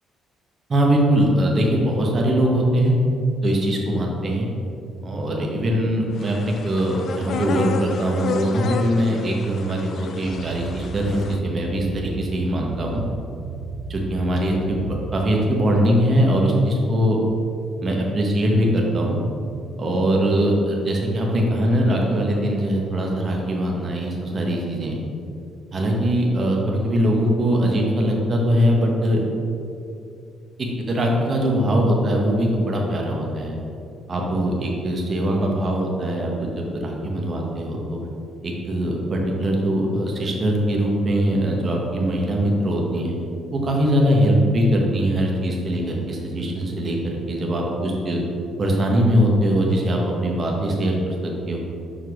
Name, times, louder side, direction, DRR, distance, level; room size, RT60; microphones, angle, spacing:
voice 1, 0.7-2.9 3.4-4.5 5.0-13.0 13.9-17.2 17.8-19.2 19.8-24.9 25.7-29.2 30.9-33.6 34.1-38.0 38.4-43.2 43.5-48.2 48.6-51.6, equal, 30° right, -1 dB, 1.0 m, -21 dB
sound 1, 6.2-11.4, left 6 dB, 50° left, 0.3 m, -31 dB
sound 2, 10.1-15.4, right 5 dB, 75° right, 0.4 m, -35 dB
6.3 x 4.7 x 4.0 m, 2.5 s
cardioid pair, 150°, 0 cm